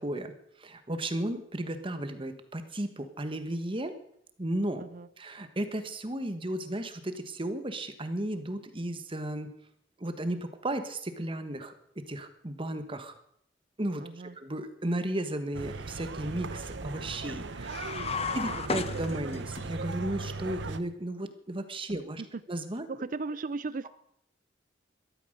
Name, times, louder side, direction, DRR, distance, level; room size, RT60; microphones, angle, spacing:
voice 1, 0.0-4.0 4.4-4.8 5.2-9.5 10.0-13.1 13.8-14.0 14.3-18.1 18.3-22.2 22.5-22.9, right 1 dB, 30° right, 9 dB, 1.3 m, -34 dB
voice 2, 14.0-14.4 18.3-18.9 22.2-22.3 22.9-23.9, right 3 dB, 45° right, 16 dB, 0.5 m, -37 dB
sound 1, 15.5-20.8, right 3 dB, 70° right, 0.9 m, -38 dB
sound 2, 17.6-19.7, left 5 dB, 35° left, 0.8 m, -34 dB
13.0 x 12.5 x 6.6 m, 0.71 s
head